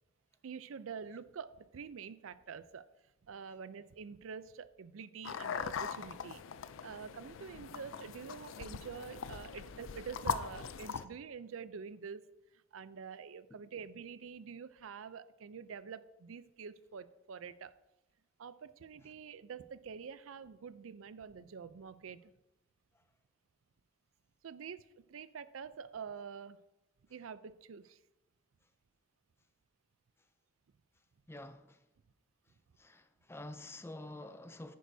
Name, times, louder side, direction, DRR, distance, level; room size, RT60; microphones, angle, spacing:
voice 1, 0.4-2.9 3.2-6.4 6.8-12.2 12.5-17.7 18.4-22.3 24.4-26.6 27.1-28.0, right 6 dB, 90° right, 0.5 m, -47 dB
sound 1, 5.2-11.0, left 6 dB, 70° left, 0.4 m, -41 dB
voice 2, 31.3-31.9 32.8-34.8, left 1 dB, 15° left, 0.5 m, -48 dB
10.0 x 9.3 x 2.7 m
head